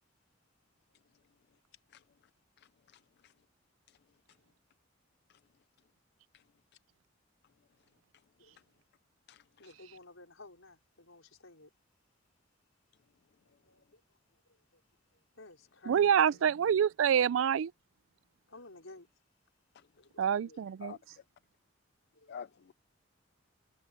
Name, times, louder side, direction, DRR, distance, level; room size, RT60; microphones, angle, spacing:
voice 1, 2.6-3.3 3.9-4.0 5.3-5.4 6.3-6.4 9.3-9.7 19.7-19.9 20.8-21.0 22.3-22.7, left 7 dB, 55° left, 0.4 m, -50 dB
voice 2, 9.6-11.7 13.4-14.2 14.5-14.8 15.1-16.4 18.5-19.1 20.0-20.6 22.1-22.5, left 2 dB, 90° left, 4.7 m, -55 dB
voice 3, 15.9-17.7 20.2-20.9, right 8 dB, 75° right, 0.3 m, -26 dB
head